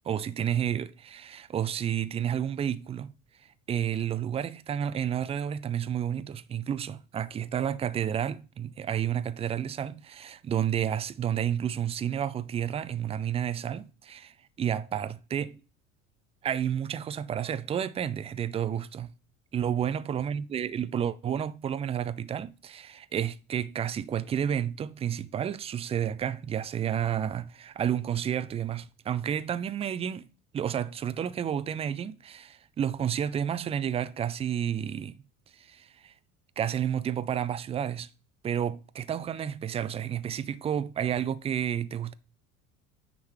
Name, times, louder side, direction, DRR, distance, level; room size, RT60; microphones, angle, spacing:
voice 1, 0.0-3.1 3.7-15.6 16.4-19.1 19.5-30.3 30.5-35.2 35.6-36.1 36.6-38.1 38.4-42.1, right 9 dB, 15° right, 0.4 m, -31 dB
9.5 x 3.6 x 4.6 m
figure-of-eight pair, 65°, 39 cm